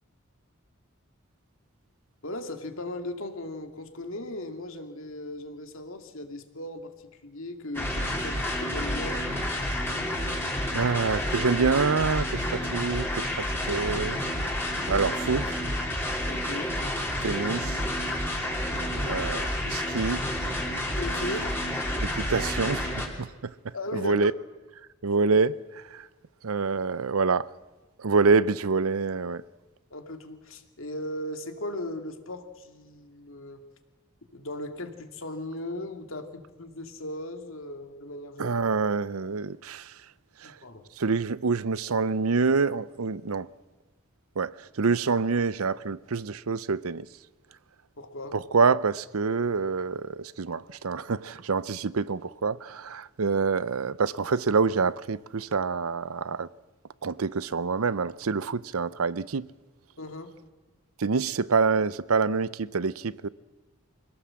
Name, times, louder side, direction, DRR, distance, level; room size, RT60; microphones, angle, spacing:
voice 1, 2.2-9.2 16.2-16.7 18.6-19.2 20.9-21.5 23.7-24.3 29.9-33.6 34.3-38.6 40.4-40.9 48.0-48.4 60.0-60.3, left 1 dB, 70° left, 2.2 m, -37 dB
sound 1, 7.7-23.1, left 1 dB, 10° left, 3.1 m, -30 dB
voice 2, 10.7-14.2 14.9-15.6 17.2-17.8 19.1-20.2 22.0-24.3 25.0-26.1 26.4-27.5 28.0-29.4 38.4-39.9 40.4-40.5 41.0-43.5 44.4-47.1 48.3-56.5 57.0-59.5 61.0-63.3, right 4 dB, 85° right, 0.7 m, -26 dB
25.0 x 17.5 x 7.5 m
head